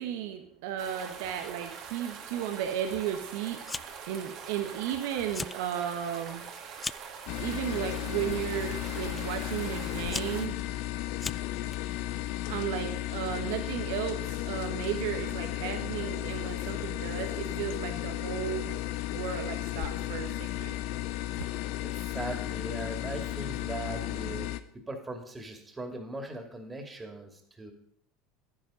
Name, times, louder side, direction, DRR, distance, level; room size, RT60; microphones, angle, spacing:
voice 1, 0.0-6.4 7.4-10.5 12.5-18.7 19.1-20.8, right 9 dB, 70° right, 6 dB, 1.2 m, -34 dB
sound 1, 0.8-10.5, right 6 dB, 50° right, 2.0 m, -44 dB
Fire, 3.6-4.1 4.4-4.9 5.2-5.6 6.0-7.2 8.0-8.3 9.2-9.3 9.8-11.8, left 4 dB, 20° left, 0.4 m, -39 dB
sound 2, 7.3-24.6, left 14 dB, 65° left, 0.7 m, -34 dB
voice 2, 21.8-27.7, right 2 dB, 20° right, 5 dB, 2.8 m, -40 dB
11.5 x 10.5 x 5.2 m, 0.66 s
hypercardioid pair, 80°, 0 cm